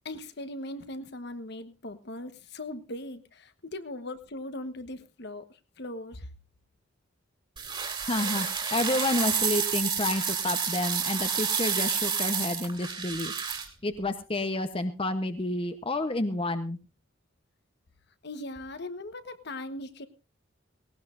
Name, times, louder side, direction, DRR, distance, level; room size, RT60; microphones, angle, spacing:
voice 1, 0.0-6.3 18.2-20.1, left 1 dB, 55° left, 10 dB, 1.2 m, -39 dB
sound 1, 7.6-13.7, right 6 dB, 25° right, 2.7 m, -29 dB
voice 2, 8.1-13.3 13.8-16.8, left 1 dB, 25° left, 9 dB, 0.9 m, -30 dB
18.5 x 18.0 x 2.6 m, 0.29 s
head